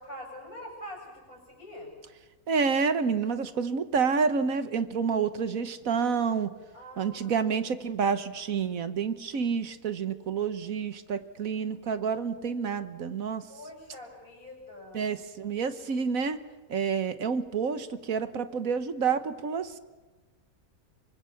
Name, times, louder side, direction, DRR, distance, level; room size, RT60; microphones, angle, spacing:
voice 1, 0.0-1.9 6.7-7.5 13.5-15.1, left 1 dB, 75° left, 2 dB, 7.6 m, -44 dB
voice 2, 2.5-6.5 7.0-13.4 14.9-16.4 16.7-19.8, right 6 dB, 70° right, 12 dB, 1.6 m, -29 dB
24.5 x 24.5 x 7.1 m, 1.2 s
omnidirectional pair, 1.6 m